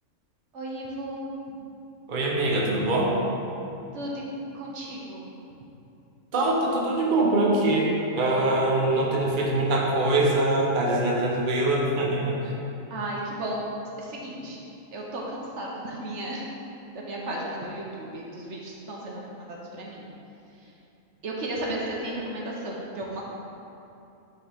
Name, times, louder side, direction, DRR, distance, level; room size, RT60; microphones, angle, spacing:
voice 1, 0.5-1.2 3.9-4.2 4.5-5.3 8.9-9.4 12.9-13.6 14.0-14.6 14.9-16.5 16.9-20.1 21.2-23.3, right 1 dB, 65° right, -3 dB, 1.2 m, -34 dB
voice 2, 2.1-3.2 6.3-12.4, right 2 dB, 45° right, -3 dB, 0.9 m, -23 dB
8.7 x 4.5 x 3.5 m, 2.8 s
omnidirectional pair, 1.4 m